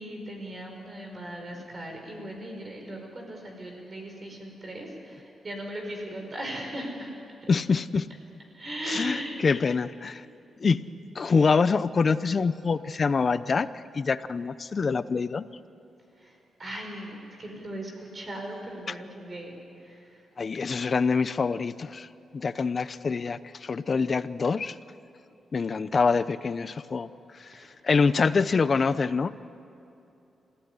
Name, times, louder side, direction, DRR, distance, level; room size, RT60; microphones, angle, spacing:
voice 1, 0.0-7.1 7.4-7.5 8.5-9.4 16.2-20.3 27.5-27.8, right 1 dB, 35° right, 2 dB, 4.7 m, -38 dB
voice 2, 7.5-8.1 8.9-10.2 10.6-10.8 11.1-15.4 20.4-22.1 22.3-24.8 25.5-27.1 27.4-29.3, left 5 dB, 40° left, 14 dB, 0.8 m, -25 dB
29.0 x 15.5 x 9.8 m, 2.9 s
cardioid pair, 100°, 0 cm